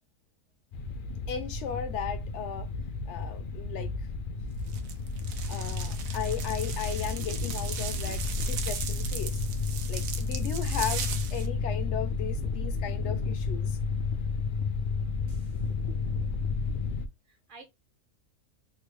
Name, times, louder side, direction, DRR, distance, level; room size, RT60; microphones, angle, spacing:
sound 1, 0.7-17.1, left 4 dB, 85° left, 0.4 m, -32 dB
voice 1, 1.3-2.7 3.1-3.9 5.5-9.4 9.9-13.8, left 8 dB, 60° left, 0.9 m, -36 dB
sound 2, 4.7-11.5, right 5 dB, 75° right, 1.0 m, -37 dB
voice 2, 15.3-15.7 17.2-17.6, right 3 dB, 45° right, 0.8 m, -52 dB
3.4 x 2.2 x 3.1 m
omnidirectional pair, 1.5 m